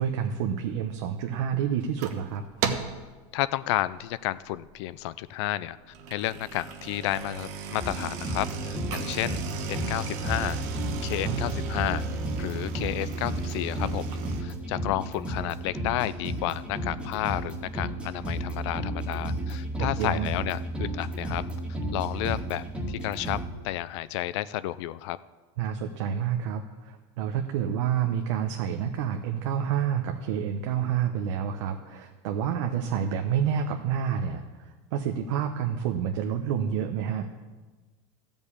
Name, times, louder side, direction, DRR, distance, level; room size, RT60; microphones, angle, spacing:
voice 1, 0.0-2.4 11.2-11.4 19.8-20.3 25.6-37.3, right 8 dB, 75° right, 4 dB, 0.9 m, -29 dB
sound 1, 1.8-2.3 2.6-3.1 3.5-3.8 4.3-4.4 4.7-4.8 5.8-14.4, right 5 dB, 55° right, 1.2 m, -35 dB
voice 2, 3.3-5.8 6.1-9.4 9.7-10.6 11.0-12.0 12.4-21.4 21.9-23.4 23.6-25.2, left 15 dB, 65° left, 17 dB, 0.4 m, -31 dB
sound 2, 7.8-23.5, right 1 dB, 5° right, 1.7 m, -33 dB
13.0 x 5.3 x 8.4 m, 1.3 s
supercardioid pair, 145°, 15 cm